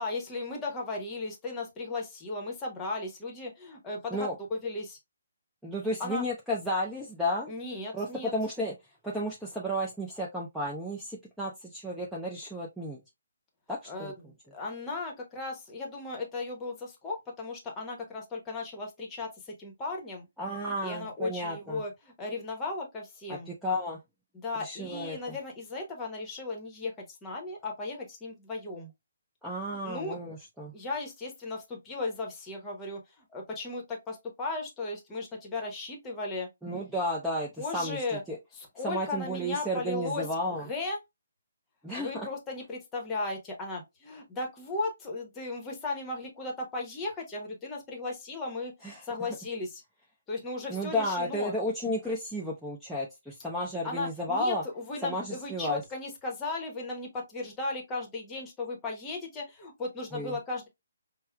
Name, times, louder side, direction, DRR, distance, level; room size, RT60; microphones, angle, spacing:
voice 1, 0.0-5.0 6.0-6.2 7.5-8.3 13.9-20.3 20.7-23.5 24.3-28.9 29.7-30.2 30.7-33.0 33.3-36.5 37.6-38.2 38.5-40.2 40.6-41.0 42.0-48.7 49.0-49.8 50.3-51.5 53.8-60.7, left 3 dB, 15° left, 0.9 m, -36 dB
voice 2, 5.6-7.5 7.9-8.7 9.0-13.0 13.7-14.1 20.4-21.8 23.3-24.0 24.6-25.4 29.4-30.7 36.6-38.4 38.8-40.7 41.8-42.3 48.8-49.0 50.7-54.6 55.0-55.8 60.1-60.4, equal, ahead, 0.5 m, -33 dB
5.5 x 2.1 x 2.2 m
figure-of-eight pair, 135°, 0 cm